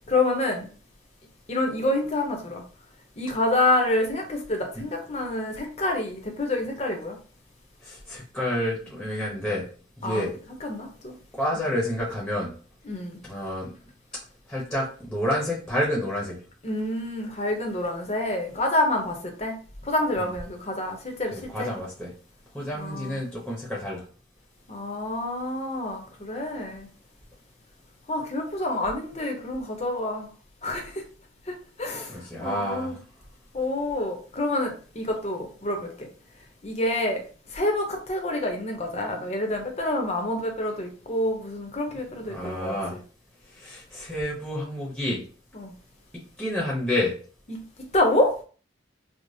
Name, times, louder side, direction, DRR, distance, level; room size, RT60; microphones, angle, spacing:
voice 1, 0.1-0.7 1.5-2.6 3.2-7.2 10.0-10.3 10.6-11.1 12.9-13.2 16.6-19.6 19.8-21.7 22.7-23.2 24.7-26.9 28.1-30.3 30.6-31.0 31.5-32.9 33.5-36.1 36.6-37.2 37.5-42.8 45.5-45.7 47.5-47.6 47.9-48.3, left 1 dB, 35° left, 3 dB, 0.7 m, -27 dB
voice 2, 7.8-9.6 10.0-10.3 11.3-12.5 13.2-13.7 14.5-16.4 20.2-20.3 21.3-22.1 22.5-24.0 32.1-33.0 42.3-43.0 43.6-45.2 46.1-47.1, left 1 dB, 5° left, -5 dB, 0.8 m, -29 dB
4.9 x 2.0 x 2.6 m, 0.40 s
head